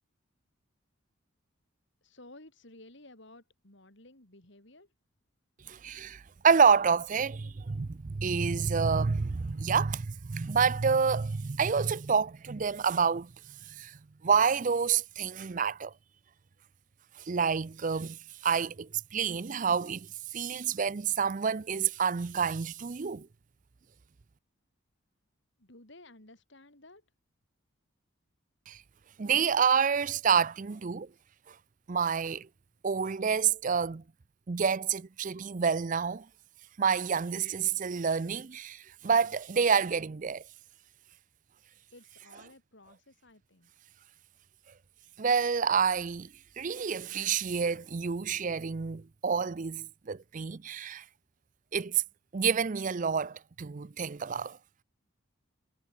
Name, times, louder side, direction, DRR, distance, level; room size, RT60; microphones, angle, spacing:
voice 1, 2.0-4.9 25.6-27.1 41.9-43.7, left 2 dB, 55° left, 3.9 m, -54 dB
voice 2, 5.7-13.3 13.7-14.0 14.2-15.9 17.2-23.3 28.7-28.8 29.2-31.1 31.5-31.6 31.9-32.5 32.8-34.0 34.5-36.3 36.8-40.4 45.2-46.3 46.6-51.0 51.7-52.0 52.3-54.6, right 6 dB, 35° right, 0.5 m, -28 dB
head